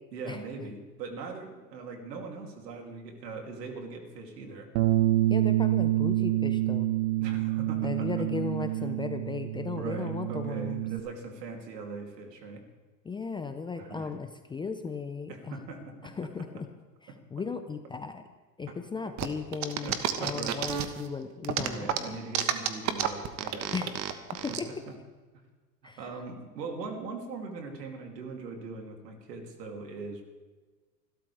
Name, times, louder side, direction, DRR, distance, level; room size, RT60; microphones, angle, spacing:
voice 1, 0.1-4.7 7.2-8.1 8.8-8.9 9.7-12.6 13.8-14.1 15.3-16.1 18.7-18.8 19.8-20.6 21.6-23.9 24.5-24.9 25.8-30.2, right 4 dB, 80° right, 2 dB, 3.1 m, -40 dB
Bass guitar, 4.8-11.0, right 15 dB, 65° right, 1.3 m, -27 dB
voice 2, 5.3-6.9 7.8-10.8 13.0-15.6 16.0-16.7 17.3-18.2 18.6-22.2 23.7-23.9 24.4-24.8 25.8-26.0, left 5 dB, 10° left, 8 dB, 0.5 m, -36 dB
sound 1, 19.2-21.1 21.4-24.6, right 11 dB, 35° right, 1.3 m, -30 dB
26.0 x 12.5 x 3.4 m, 1.3 s
hypercardioid pair, 110°, 49 cm